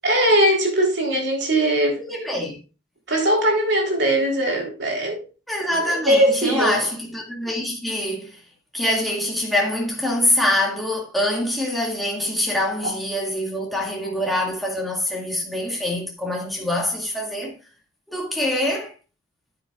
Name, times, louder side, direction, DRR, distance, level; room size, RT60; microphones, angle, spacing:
voice 1, 0.0-2.0 3.1-5.2 5.7-6.8, right 1 dB, 55° right, 3.5 m, -20 dB
voice 2, 2.0-2.6 5.5-8.4 8.7-17.6 18.1-18.9, left 1 dB, ahead, 2.1 m, -24 dB
9.9 x 8.9 x 2.4 m
head